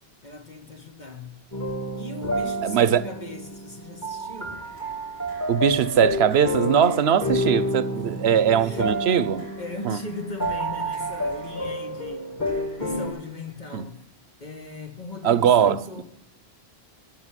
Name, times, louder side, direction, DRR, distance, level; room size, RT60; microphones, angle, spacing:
voice 1, 0.2-1.4 1.9-4.6 7.9-8.9 9.6-12.4 12.8-14.0 14.4-16.0, left 2 dB, 45° left, 1.5 m, -38 dB
sound 1, 1.5-13.1, equal, 15° left, 2.4 m, -29 dB
voice 2, 2.6-3.0 5.5-9.5 9.8-10.0 13.7-13.9 15.2-16.0, right 8 dB, 80° right, 1.0 m, -21 dB
sound 2, 4.5-14.0, left 1 dB, 80° left, 5.7 m, -50 dB
12.5 x 10.0 x 9.8 m
omnidirectional pair, 1.1 m